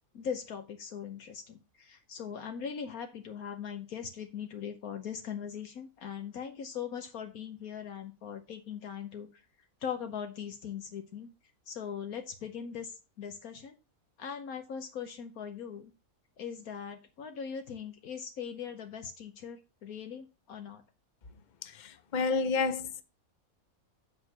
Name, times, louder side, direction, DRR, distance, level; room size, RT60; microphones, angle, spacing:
voice 1, 0.1-9.3 9.8-11.3 11.7-13.8 14.2-15.9 16.4-20.8, left 7 dB, 80° left, 1.5 m, -40 dB
voice 2, 21.6-23.0, left 4 dB, 40° left, 0.8 m, -30 dB
7.8 x 6.1 x 6.7 m
omnidirectional pair, 1.5 m